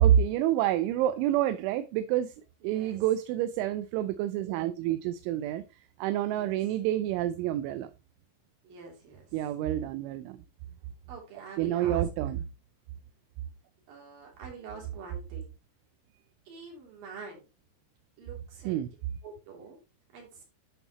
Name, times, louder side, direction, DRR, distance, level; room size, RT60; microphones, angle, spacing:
voice 1, 0.0-2.4 2.6-5.6 6.0-7.9 9.3-10.4 11.6-12.4 18.7-18.9, right 11 dB, 85° right, 2.9 m, -27 dB
voice 2, 2.6-3.0 6.2-6.6 8.6-9.3 11.1-12.0 13.9-15.5 16.5-17.5 18.2-18.8 19.2-19.8 20.1-20.4, right 4 dB, 50° right, 4.3 m, -46 dB
11.0 x 6.3 x 3.0 m
omnidirectional pair, 5.6 m